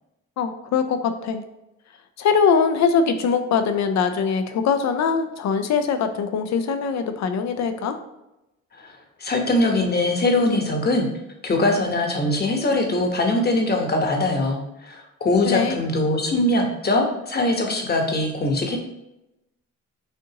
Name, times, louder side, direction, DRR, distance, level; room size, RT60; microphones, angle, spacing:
voice 1, 0.4-1.4 2.2-8.0 15.4-15.8, left 6 dB, 65° left, 8 dB, 0.6 m, -22 dB
voice 2, 9.2-11.1 11.4-14.6 14.9-18.8, left 2 dB, 30° left, 2 dB, 1.0 m, -21 dB
6.6 x 2.6 x 2.9 m, 0.90 s
cardioid pair, 90°, 30 cm